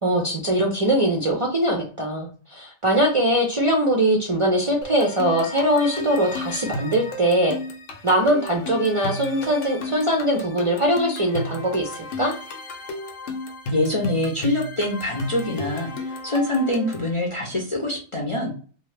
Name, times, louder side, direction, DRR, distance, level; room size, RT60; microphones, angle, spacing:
voice 1, 0.0-7.6 8.0-12.3, right 1 dB, 40° right, -1 dB, 0.4 m, -21 dB
sound 1, 4.8-17.1, left 1 dB, 85° left, 1.0 m, -34 dB
voice 2, 13.7-18.5, left 1 dB, 35° left, -1 dB, 0.5 m, -25 dB
2.8 x 2.3 x 3.2 m, 0.40 s
omnidirectional pair, 1.2 m